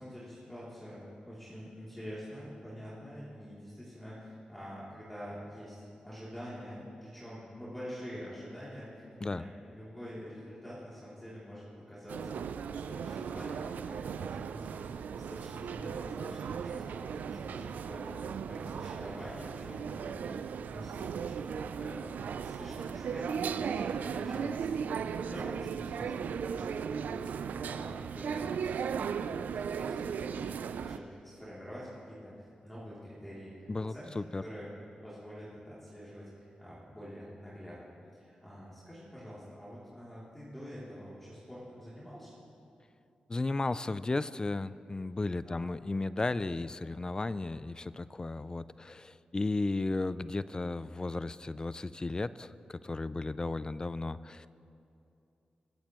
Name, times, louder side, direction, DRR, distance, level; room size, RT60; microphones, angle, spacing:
voice 1, 0.0-22.1 22.4-27.3 27.6-34.1 34.4-34.8 35.0-37.8 38.1-42.4 45.4-45.7, equal, 10° left, -9 dB, 3.1 m, -46 dB
sound 1, 12.1-31.0, right 7 dB, 85° right, 0.3 m, -37 dB
voice 2, 33.7-34.4 43.3-54.5, left 2 dB, 30° left, 15 dB, 0.3 m, -34 dB
22.0 x 8.5 x 3.1 m, 2.7 s
cardioid pair, 70°, 3 cm